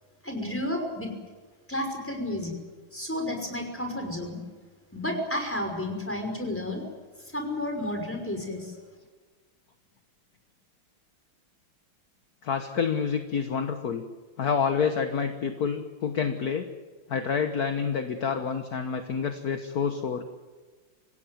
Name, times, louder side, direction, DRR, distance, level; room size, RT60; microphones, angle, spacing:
voice 1, 0.2-1.1 1.7-2.5 2.9-4.4 4.9-6.8 7.3-8.7, left 1 dB, 5° left, 4 dB, 5.5 m, -31 dB
voice 2, 12.4-14.1 14.4-16.7 17.1-20.3, left 6 dB, 50° left, 7 dB, 1.6 m, -28 dB
26.0 x 16.5 x 9.2 m, 1.4 s
omnidirectional pair, 2.2 m